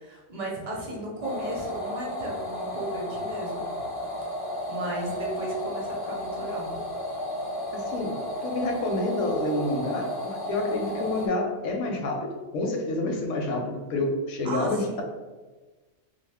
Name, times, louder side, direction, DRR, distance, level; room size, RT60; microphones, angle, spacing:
voice 1, 0.0-3.7 4.7-6.8 14.4-15.0, right 1 dB, 40° right, -2 dB, 0.7 m, -35 dB
sound 1, 1.2-11.3, left 1 dB, 30° left, 0.4 m, -33 dB
voice 2, 7.7-15.0, left 2 dB, 85° left, 3 dB, 0.9 m, -28 dB
2.5 x 2.4 x 3.4 m, 1.3 s
omnidirectional pair, 1.2 m